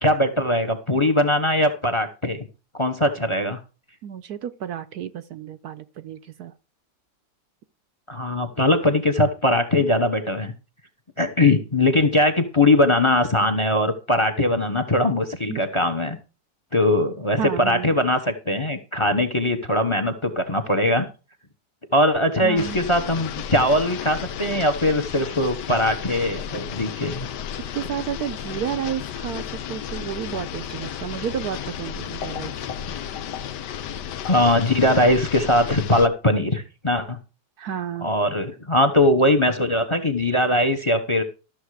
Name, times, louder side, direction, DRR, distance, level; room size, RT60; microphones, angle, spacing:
voice 1, 0.0-2.4 2.7-3.6 8.1-10.5 11.2-16.2 16.7-21.1 21.9-27.3 32.9-33.0 34.2-37.2 38.0-41.2, left 1 dB, 20° left, 1.0 m, -21 dB
voice 2, 4.0-6.5 15.5-15.6 17.4-17.9 22.4-22.8 27.7-32.5 37.6-38.1, right 9 dB, 65° right, 1.1 m, -31 dB
sound 1, 22.6-36.1, left 9 dB, 75° left, 1.4 m, -33 dB
13.5 x 7.1 x 4.9 m
omnidirectional pair, 1.9 m